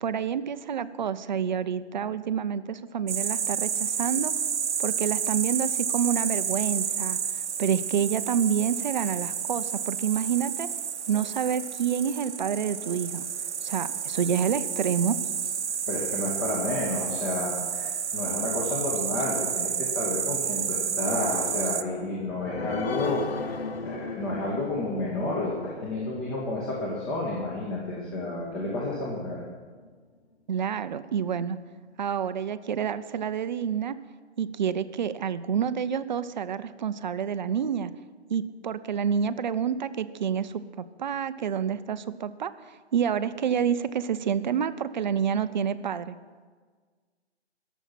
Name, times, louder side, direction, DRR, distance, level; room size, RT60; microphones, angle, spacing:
voice 1, 0.0-4.3 4.8-7.2 7.6-10.7 11.1-13.2 13.6-15.2 30.5-31.6 32.0-34.0 34.4-37.9 38.3-46.2, right 8 dB, 45° right, 13 dB, 0.6 m, -28 dB
sound 1, 3.1-21.8, right 7 dB, 85° right, 0.8 m, -30 dB
voice 2, 15.9-29.4, left 2 dB, 25° left, -4 dB, 2.0 m, -31 dB
sound 2, 22.0-29.0 29.4-29.5 29.9-30.0, left 4 dB, 60° left, 1.1 m, -38 dB
21.0 x 7.1 x 6.0 m, 1.5 s
hypercardioid pair, 160°, 34 cm